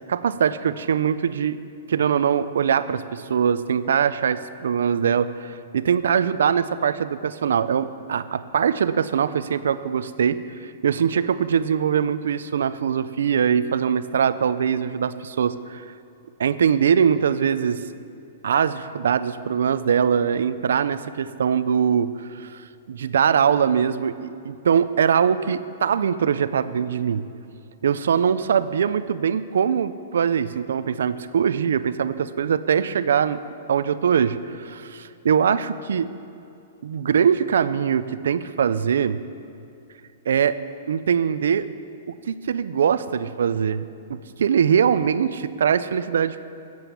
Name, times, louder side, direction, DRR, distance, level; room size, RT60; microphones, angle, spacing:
voice 1, 0.1-1.6 1.9-15.8 16.4-17.8 18.4-27.3 27.8-33.4 33.7-36.1 36.8-39.2 40.3-40.6 40.9-41.7 42.3-46.4, right 7 dB, 85° right, 14 dB, 0.6 m, -22 dB
15.0 x 7.9 x 7.0 m, 2.7 s
hypercardioid pair, 170°, 0 cm